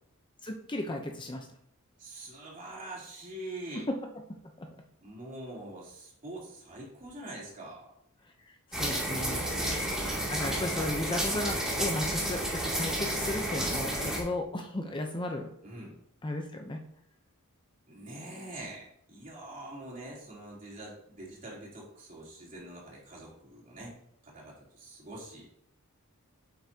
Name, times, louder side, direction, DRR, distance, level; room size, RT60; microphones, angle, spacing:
voice 1, 0.4-1.5 3.7-4.0 4.6-4.7 8.2-9.5 10.3-15.5 16.2-16.8, left 1 dB, 20° left, 4 dB, 0.7 m, -35 dB
voice 2, 2.0-3.9 5.0-7.9 9.5-10.0 13.9-14.2 15.6-16.0 17.9-24.0 24.2-25.5, right 1 dB, 35° right, -4 dB, 3.1 m, -44 dB
sound 1, 8.7-14.2, right 1 dB, 5° right, 2.5 m, -31 dB
9.4 x 7.7 x 2.8 m, 0.70 s
head